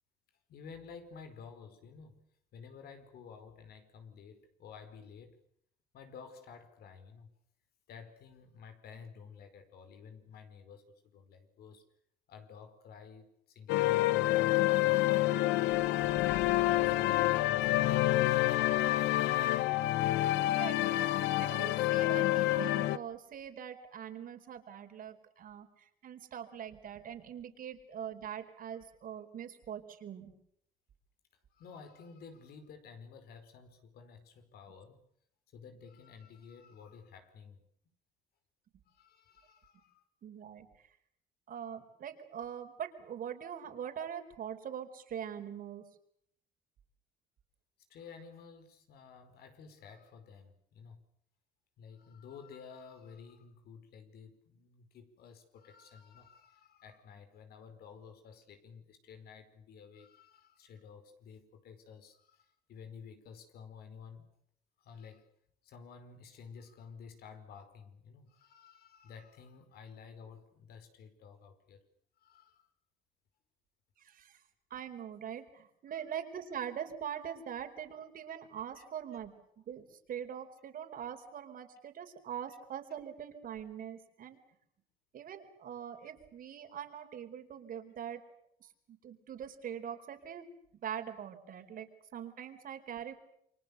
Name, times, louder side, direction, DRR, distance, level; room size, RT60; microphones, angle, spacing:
voice 1, 0.5-2.2 2.5-5.4 5.9-7.3 7.9-11.8 12.3-15.8 16.2-19.0 31.5-35.0 35.5-37.6 38.9-40.0 47.9-51.0 51.8-64.3 64.8-65.3 65.6-71.8 72.2-72.7 75.9-76.1 78.7-78.8, left 6 dB, 65° left, 5.0 m, -52 dB
sound 1, 13.7-23.0, left 17 dB, 90° left, 1.0 m, -28 dB
voice 2, 20.5-30.3 40.2-40.7 41.5-45.8 74.0-74.4 74.7-79.3 79.7-84.4 85.1-88.2 88.6-90.5 90.8-93.1, right 9 dB, 55° right, 4.5 m, -43 dB
29.0 x 24.0 x 6.9 m
cardioid pair, 110°, 17 cm